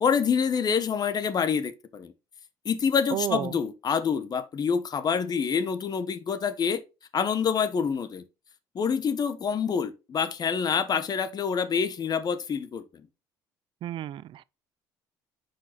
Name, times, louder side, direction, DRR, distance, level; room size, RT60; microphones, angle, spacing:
voice 1, 0.0-2.1 2.6-6.8 7.1-8.2 8.7-13.1, left 6 dB, 45° left, 1.2 m, -27 dB
voice 2, 3.1-3.6 13.8-14.4, right 12 dB, 60° right, 0.5 m, -32 dB
5.8 x 5.3 x 4.0 m
supercardioid pair, 75°, 10 cm